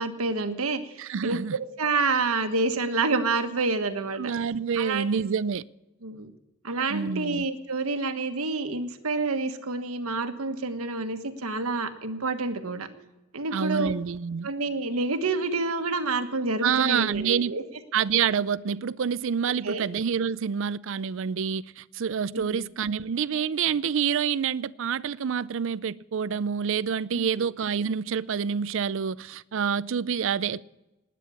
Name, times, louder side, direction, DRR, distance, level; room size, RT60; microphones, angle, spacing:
voice 1, 0.0-4.3 4.7-5.1 6.0-6.3 6.6-12.9 13.3-13.9 14.4-17.6 19.6-19.9 22.3-22.4 27.1-27.4, right 3 dB, 90° right, 1.4 m, -28 dB
voice 2, 1.0-1.6 4.2-5.6 6.9-7.4 13.5-14.5 16.6-17.5 17.9-30.6, right 7 dB, 60° right, 0.4 m, -27 dB
19.5 x 9.2 x 7.0 m
head